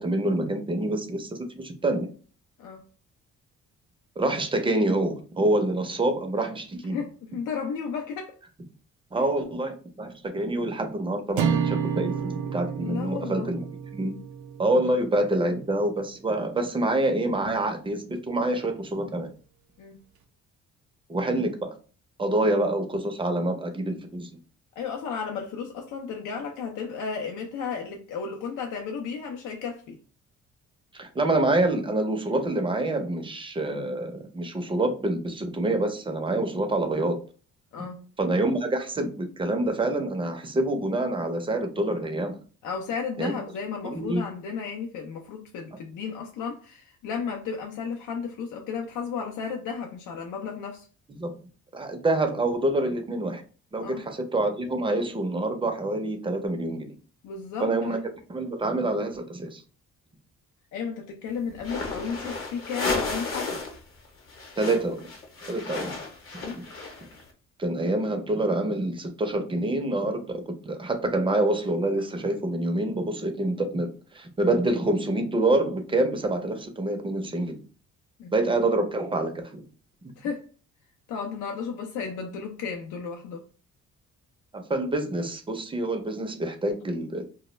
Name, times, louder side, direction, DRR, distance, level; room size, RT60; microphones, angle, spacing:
voice 1, 0.0-2.1 4.2-7.0 9.1-13.6 13.9-14.2 14.6-19.3 21.1-21.7 22.2-24.4 30.9-37.2 38.2-42.4 43.2-43.3 43.9-44.3 51.1-51.3 51.7-53.4 53.7-56.9 57.6-58.0 58.3-59.6 64.6-65.0 65.5-65.9 67.6-77.6 78.3-79.6 84.5-87.3, right 2 dB, 15° right, 0.4 m, -26 dB
voice 2, 6.9-8.3 12.8-13.5 19.8-20.0 22.4-22.5 24.8-30.0 37.7-38.0 42.6-50.9 53.8-54.0 57.2-58.0 60.7-63.6 66.4-66.6 78.2-78.7 80.2-80.5 81.1-83.4, left 6 dB, 80° left, 0.5 m, -34 dB
sound 1, 11.4-15.7, right 7 dB, 75° right, 0.5 m, -30 dB
sound 2, 61.6-63.8 64.1-67.2, left 3 dB, 45° left, 0.8 m, -33 dB
2.2 x 2.0 x 3.0 m
cardioid pair, 90°, 30 cm